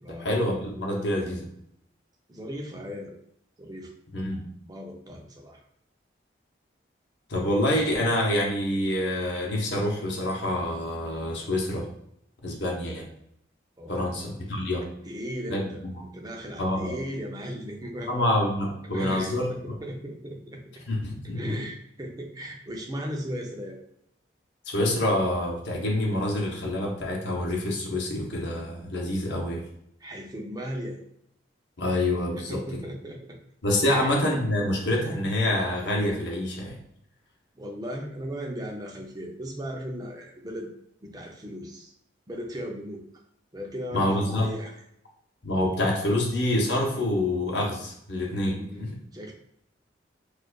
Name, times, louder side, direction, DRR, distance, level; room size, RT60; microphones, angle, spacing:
voice 1, 0.1-1.5 4.1-4.4 7.3-11.9 12.4-13.1 13.9-14.9 15.5-16.1 16.6-17.0 18.1-19.8 20.9-21.5 24.7-29.6 31.8-32.8 33.6-36.8 43.9-44.5 45.4-48.9, left 1 dB, 65° left, -1 dB, 0.8 m, -27 dB
voice 2, 2.3-3.2 3.6-3.9 4.7-5.6 13.8-14.2 15.0-15.8 16.1-18.1 18.9-20.8 21.3-23.8 30.0-31.0 32.4-33.4 33.8-34.1 37.6-40.7 41.0-41.9 42.3-43.0 43.5-44.8 48.5-49.3, equal, 20° right, 2 dB, 0.5 m, -37 dB
4.6 x 2.4 x 2.2 m, 0.72 s
head